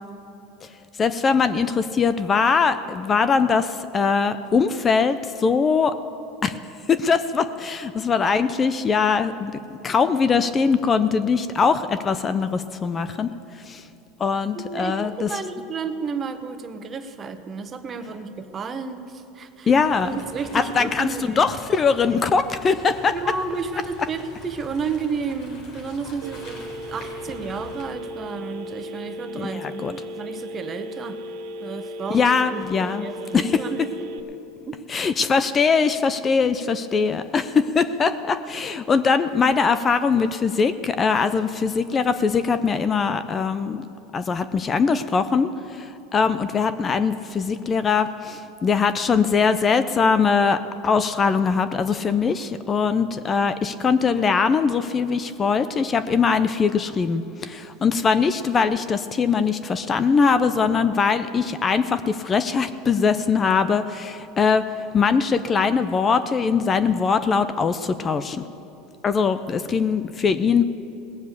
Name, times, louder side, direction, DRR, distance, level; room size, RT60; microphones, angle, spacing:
voice 1, 1.0-5.9 6.4-6.6 6.9-13.3 13.6-13.8 14.2-15.3 19.7-20.1 20.5-21.1 21.4-23.1 29.4-29.9 32.1-33.1 33.3-33.6 34.9-43.8 44.1-64.6 64.9-68.5 69.0-70.6, left 5 dB, 30° left, 12 dB, 0.5 m, -21 dB
voice 2, 14.5-19.7 20.0-21.5 23.1-31.2 31.6-34.1 34.7-34.8, right 5 dB, 30° right, 8 dB, 1.1 m, -32 dB
sound 1, 19.7-27.8, left 2 dB, 60° left, 3.9 m, -43 dB
Telephone, 26.2-34.2, equal, 75° right, 1.2 m, -36 dB
18.5 x 7.2 x 8.1 m, 2.9 s
supercardioid pair, 105°, 0 cm